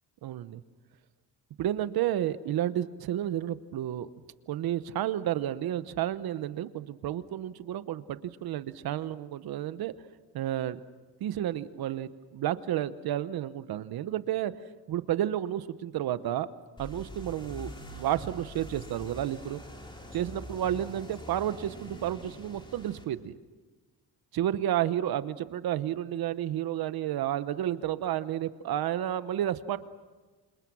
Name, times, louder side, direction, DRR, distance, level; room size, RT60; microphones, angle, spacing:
voice 1, 0.2-0.6 1.6-4.1 4.5-9.9 10.3-10.8 11.2-14.5 14.9-16.5 16.8-19.6 20.1-23.3 24.3-29.8, right 12 dB, 60° right, 14 dB, 1.0 m, -31 dB
sound 1, 16.8-23.0, equal, 10° left, 3.0 m, -44 dB
29.0 x 26.5 x 6.2 m, 1.4 s
cardioid pair, 170°, 40 cm